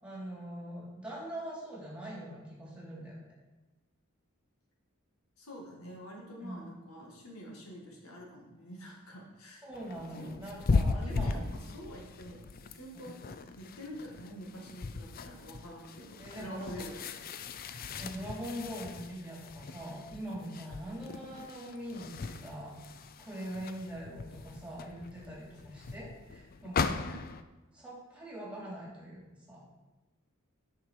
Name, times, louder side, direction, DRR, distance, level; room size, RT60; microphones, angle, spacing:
voice 1, 0.0-3.2 6.4-6.6 9.6-11.4 12.9-13.1 16.2-16.7 18.0-27.1 27.7-29.6, equal, 5° right, -5 dB, 2.9 m, -43 dB
voice 2, 5.4-9.6 10.1-17.0 20.7-20.8 27.0-27.2, equal, 80° left, -1 dB, 2.0 m, -47 dB
sound 1, 9.7-27.4, left 4 dB, 45° left, 0.4 m, -38 dB
10.0 x 5.9 x 4.6 m, 1.1 s
head